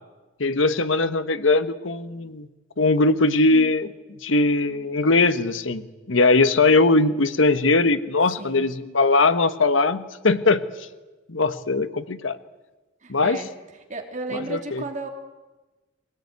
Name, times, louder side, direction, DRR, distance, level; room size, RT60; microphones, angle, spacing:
voice 1, 0.4-2.5 2.8-3.9 4.2-10.6 11.3-12.4 13.1-13.4 14.5-14.8, left 3 dB, 85° left, 12 dB, 1.3 m, -20 dB
voice 2, 8.4-8.7 13.0-13.5 13.9-15.1, right 2 dB, 40° right, 4 dB, 3.1 m, -33 dB
24.0 x 18.5 x 9.5 m, 1.2 s
head